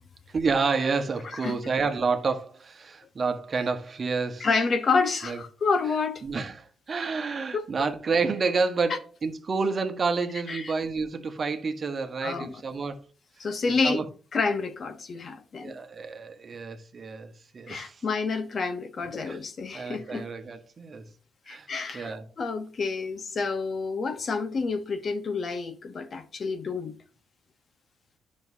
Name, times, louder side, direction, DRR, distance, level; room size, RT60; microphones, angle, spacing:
voice 1, 0.3-4.5 5.2-5.4 6.2-13.0 13.8-14.1 15.6-18.0 19.2-19.4 19.7-21.0 21.5-21.7 21.9-22.2, right 4 dB, 40° right, 1.3 m, -29 dB
voice 2, 4.4-6.2 7.5-7.7 8.9-9.0 10.5-10.7 12.2-12.5 13.4-14.0 14.3-15.7 17.7-20.2 21.5-26.9, left 4 dB, 45° left, 1.0 m, -29 dB
10.5 x 6.2 x 2.8 m
cardioid pair, 90°, 0 cm